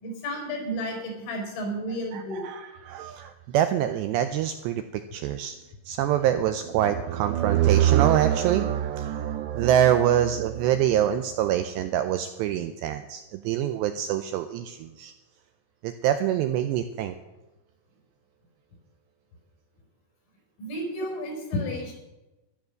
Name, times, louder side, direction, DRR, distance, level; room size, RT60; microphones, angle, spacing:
voice 1, 0.0-2.4 20.6-21.9, equal, 90° left, 2 dB, 6.5 m, -32 dB
voice 2, 2.1-5.6 5.9-15.1 15.8-17.1, right 11 dB, 90° right, 9 dB, 2.5 m, -24 dB
13.5 x 11.5 x 6.4 m, 1.0 s
omnidirectional pair, 5.7 m